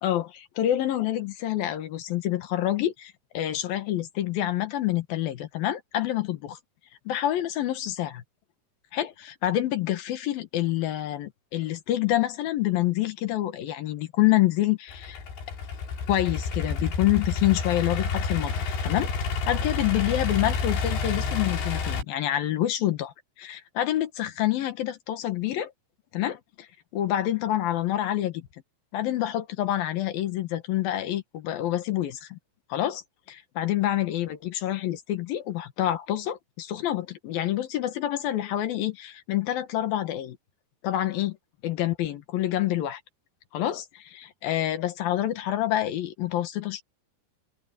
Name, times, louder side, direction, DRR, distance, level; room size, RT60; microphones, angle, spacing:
voice 1, 0.0-6.6 7.1-8.2 8.9-15.2 16.1-19.1 19.5-25.7 26.1-26.4 26.9-28.5 28.9-32.4 32.7-33.0 33.3-40.4 40.8-41.3 41.6-43.0 43.5-43.8 44.1-46.8, left 13 dB, 65° left, 2.8 m, -27 dB
Idling / Accelerating revving vroom, 14.9-22.0, left 5 dB, 85° left, 6.3 m, -29 dB
omnidirectional pair, 4.9 m